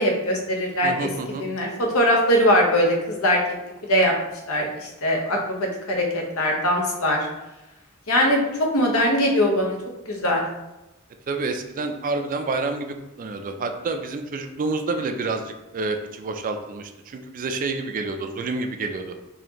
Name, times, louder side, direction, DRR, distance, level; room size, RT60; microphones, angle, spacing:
voice 1, 0.0-1.1 1.4-3.4 3.8-4.1 4.5-7.3 8.1-9.8 10.1-10.4, equal, 70° left, 0 dB, 0.8 m, -21 dB
voice 2, 0.8-1.4 11.3-19.1, right 3 dB, 40° right, 6 dB, 0.3 m, -28 dB
4.1 x 2.8 x 2.8 m, 0.98 s
head